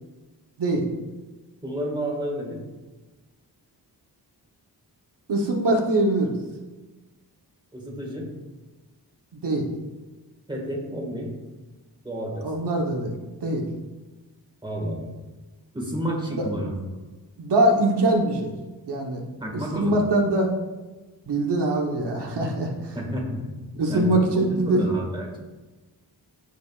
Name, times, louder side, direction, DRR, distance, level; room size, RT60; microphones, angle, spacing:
voice 1, 1.6-2.6 7.7-8.3 10.5-11.3 12.0-12.5 14.6-15.1 15.7-16.7 19.4-20.0 22.9-25.4, equal, 10° right, -2 dB, 1.9 m, -30 dB
voice 2, 5.3-6.3 9.3-9.7 12.4-13.1 13.4-13.6 16.3-16.4 17.4-18.5 18.9-19.2 19.7-20.5 21.3-22.9 23.8-24.8, right 1 dB, 80° right, 0 dB, 1.2 m, -23 dB
14.5 x 5.2 x 2.5 m, 1.2 s
wide cardioid pair, 135°, 40 cm